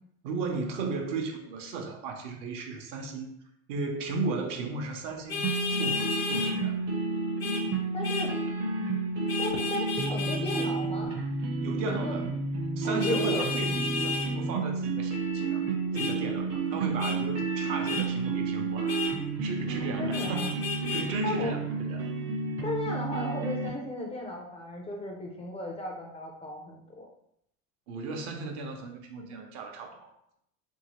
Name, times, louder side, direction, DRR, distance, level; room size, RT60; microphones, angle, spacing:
voice 1, 0.2-3.3 3.7-5.5 5.8-6.8 11.6-12.3 12.8-15.7 15.9-18.9 19.4-20.5 20.9-22.0 27.9-30.1, right 4 dB, 65° right, 3 dB, 0.8 m, -35 dB
Vehicle horn car horn honking, 5.3-6.5 7.4-7.6 8.0-8.3 9.3-10.7 13.0-14.3 15.9-16.1 17.0-17.2 17.8-18.0 18.9-19.1 20.1-21.0, left 4 dB, 85° left, 1.0 m, -32 dB
sound 1, 5.4-23.7, right 3 dB, 35° right, 0.6 m, -31 dB
voice 2, 7.9-8.3 9.4-11.1 11.8-12.2 12.8-13.4 20.0-20.6 21.2-21.6 22.6-27.1, left 2 dB, 15° left, -1 dB, 0.3 m, -35 dB
3.0 x 2.7 x 2.9 m, 0.75 s
supercardioid pair, 115°, 39 cm